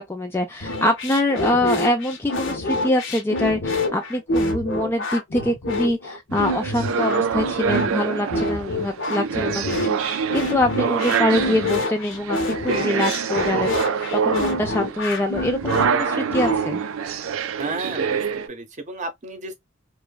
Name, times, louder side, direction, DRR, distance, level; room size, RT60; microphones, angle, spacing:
voice 1, 0.0-16.8, left 1 dB, 10° left, 0.3 m, -24 dB
sound 1, 0.6-16.6, left 2 dB, 65° left, 0.7 m, -27 dB
sound 2, 6.3-18.5, right 6 dB, 80° right, 0.4 m, -26 dB
voice 2, 17.6-19.5, right 2 dB, 35° right, 0.7 m, -33 dB
3.0 x 2.1 x 2.2 m
head